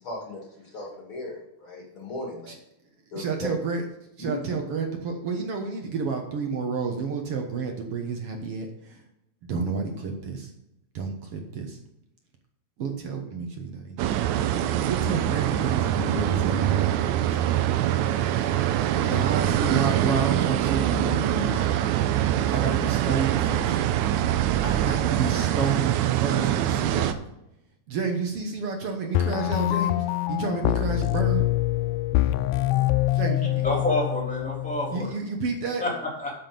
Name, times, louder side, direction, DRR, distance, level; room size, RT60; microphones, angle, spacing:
voice 1, 0.0-2.5 3.1-3.5 4.2-4.4, left 1 dB, 45° left, -2 dB, 3.0 m, -36 dB
voice 2, 3.1-3.8 4.2-9.0 9.4-10.5 10.9-11.8 12.8-14.1 14.9-16.9 17.3-17.6 18.3-21.6 22.5-23.8 24.6-27.2 27.9-31.5 33.1-33.6 34.9-35.8, right 5 dB, 60° right, 3 dB, 1.8 m, -30 dB
sound 1, 14.0-27.1, right 11 dB, 85° right, 2.0 m, -24 dB
sound 2, 29.1-35.2, left 15 dB, 80° left, 2.0 m, -25 dB
voice 3, 33.6-35.1 35.8-36.3, left 2 dB, ahead, -3 dB, 2.8 m, -28 dB
12.5 x 6.1 x 5.3 m, 0.86 s
omnidirectional pair, 3.6 m